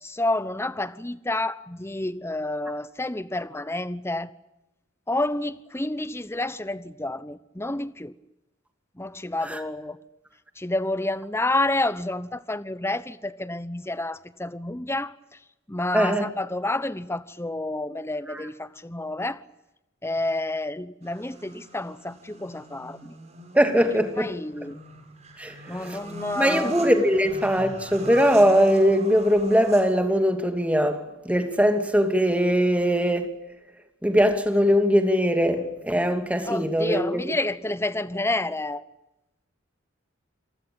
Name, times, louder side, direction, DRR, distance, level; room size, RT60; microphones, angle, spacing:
voice 1, 0.0-4.3 5.1-8.1 9.0-10.0 10.6-15.1 15.7-19.4 20.0-23.1 24.2-24.8 25.7-26.8 36.5-38.8, left 2 dB, 15° left, 1.0 m, -29 dB
voice 2, 15.9-16.3 18.3-18.4 23.5-24.3 25.4-25.5 25.8-26.0 26.4-33.3 34.0-37.2, equal, 5° right, 2.8 m, -21 dB
sound 1, 21.0-30.1, right 2 dB, 35° right, 6.2 m, -42 dB
28.0 x 19.5 x 8.9 m
head